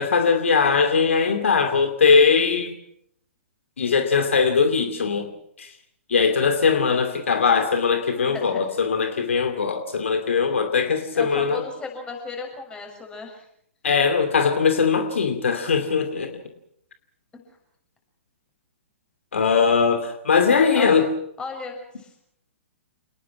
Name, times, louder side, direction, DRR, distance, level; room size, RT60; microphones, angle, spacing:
voice 1, 0.0-2.7 3.8-5.3 5.6-5.7 6.1-11.6 13.8-16.3 19.3-21.1, left 5 dB, 65° left, 7 dB, 2.6 m, -20 dB
voice 2, 8.1-8.7 11.1-13.5 17.3-17.4 20.5-21.0 21.4-22.1, left 4 dB, 10° left, 3 dB, 6.9 m, -35 dB
28.5 x 20.5 x 6.0 m, 0.71 s
figure-of-eight pair, 115°, 8 cm